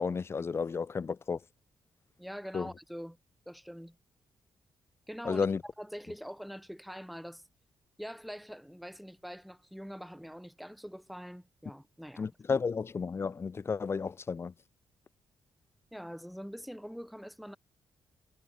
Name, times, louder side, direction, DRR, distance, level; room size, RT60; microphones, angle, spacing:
voice 1, 0.0-1.4 2.5-2.7 5.2-5.6 12.2-14.5, left 5 dB, 35° left, 1.4 m, -32 dB
voice 2, 2.2-3.2 3.4-4.0 5.1-7.4 8.0-12.6 15.9-17.6, equal, ahead, 3.1 m, -44 dB
cardioid pair, 130°, 8 cm